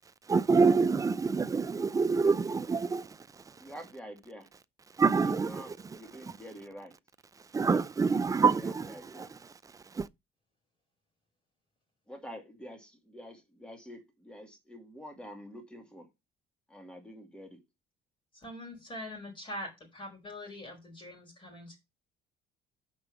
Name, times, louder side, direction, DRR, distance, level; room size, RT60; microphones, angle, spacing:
voice 1, 0.3-3.2 5.0-5.8 7.5-9.3 9.9-10.1, right 4 dB, 20° right, 0.5 m, -26 dB
voice 2, 3.6-4.5 5.1-7.0 8.4-9.3 12.1-16.1 16.7-17.6, equal, 5° left, 2.4 m, -47 dB
voice 3, 18.3-21.8, left 1 dB, 30° left, 4.7 m, -43 dB
5.9 x 5.4 x 6.8 m
cardioid pair, 110°, 17 cm